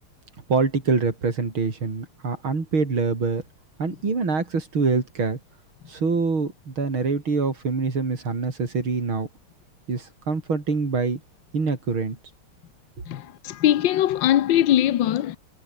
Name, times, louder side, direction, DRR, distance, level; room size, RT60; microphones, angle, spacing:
voice 1, 0.5-3.4 3.8-5.4 5.9-9.3 9.9-11.2 11.5-12.2, right 4 dB, 75° right, 5.1 m, -25 dB
voice 2, 13.1-15.4, left 12 dB, 65° left, 1.6 m, -21 dB
omnidirectional pair, 2.3 m